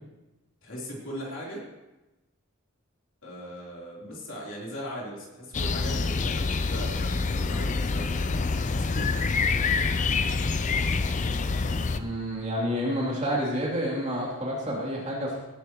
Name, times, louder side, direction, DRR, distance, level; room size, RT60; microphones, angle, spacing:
voice 1, 0.6-1.6 3.2-9.2, equal, 60° left, -4 dB, 3.7 m, -39 dB
sound 1, 5.5-12.0, left 4 dB, 35° left, 0.5 m, -26 dB
voice 2, 12.0-15.4, equal, 30° right, -5 dB, 3.1 m, -29 dB
17.5 x 11.5 x 3.1 m, 1.0 s
head